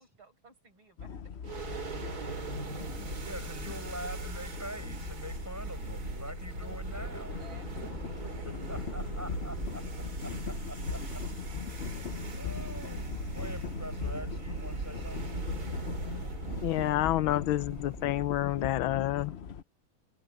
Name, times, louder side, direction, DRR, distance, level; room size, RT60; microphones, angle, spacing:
voice 1, 0.0-1.8 6.2-9.1, right 4 dB, 90° right, 7.6 m, -58 dB
sound 1, 1.0-19.6, left 7 dB, 50° left, 0.7 m, -40 dB
sound 2, 1.4-18.8, right 3 dB, 50° right, 3.4 m, -39 dB
voice 2, 3.2-7.3 7.8-7.9 8.2-9.8 10.2-11.2 11.6-11.9 12.4-15.3, right 1 dB, 5° right, 6.2 m, -44 dB
voice 3, 16.6-19.3, left 14 dB, 85° left, 1.5 m, -29 dB
open air
omnidirectional pair, 2.1 m